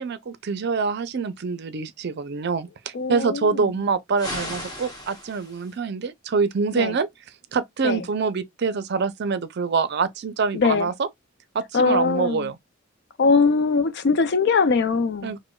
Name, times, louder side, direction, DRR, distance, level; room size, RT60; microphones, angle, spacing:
voice 1, 0.0-7.1 7.5-11.1 11.5-12.6 15.2-15.4, right 5 dB, 55° right, 0.5 m, -25 dB
voice 2, 2.9-3.6 6.7-6.9 7.8-8.0 10.5-10.9 11.7-12.5 13.2-15.3, left 4 dB, 60° left, 0.5 m, -21 dB
sound 1, 4.2-5.8, left 1 dB, 20° left, 1.2 m, -35 dB
4.9 x 2.1 x 2.2 m
head